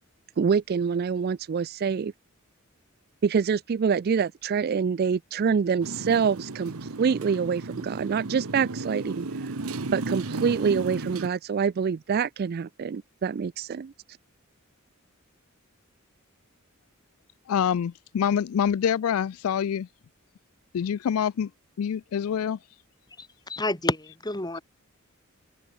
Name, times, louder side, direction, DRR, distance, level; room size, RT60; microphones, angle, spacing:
voice 1, 0.4-2.1 3.2-6.7 7.0-9.3 9.9-13.9, right 6 dB, 45° right, 0.3 m, -26 dB
Motorcycle, 5.8-11.3, right 3 dB, 80° right, 1.2 m, -34 dB
voice 2, 17.5-19.9 20.7-21.5 21.8-22.6, left 8 dB, 80° left, 0.3 m, -26 dB
voice 3, 23.2-24.6, left 2 dB, 20° left, 2.9 m, -29 dB
head